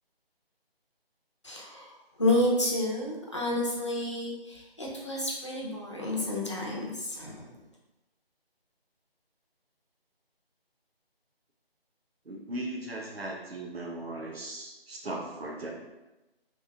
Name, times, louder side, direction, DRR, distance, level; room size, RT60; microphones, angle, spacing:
voice 1, 1.4-7.5, left 1 dB, 30° left, -4 dB, 0.6 m, -30 dB
voice 2, 12.2-15.7, right 1 dB, 75° right, -1 dB, 1.0 m, -38 dB
3.4 x 2.7 x 3.4 m, 1.0 s
figure-of-eight pair, 165°, 31 cm